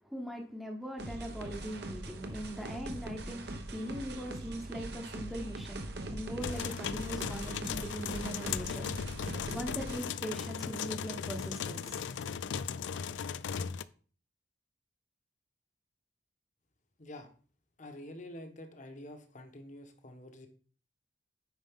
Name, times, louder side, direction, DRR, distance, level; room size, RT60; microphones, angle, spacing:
voice 1, 0.0-5.9 6.1-12.3, equal, ahead, 1 dB, 0.9 m, -41 dB
sound 1, 1.0-10.0, right 1 dB, 65° right, 1.0 m, -42 dB
sound 2, 6.4-13.8, left 7 dB, 90° left, 0.4 m, -37 dB
voice 2, 17.0-17.3 17.8-20.5, left 1 dB, 45° left, 6 dB, 1.1 m, -47 dB
9.2 x 5.3 x 3.6 m, 0.42 s
head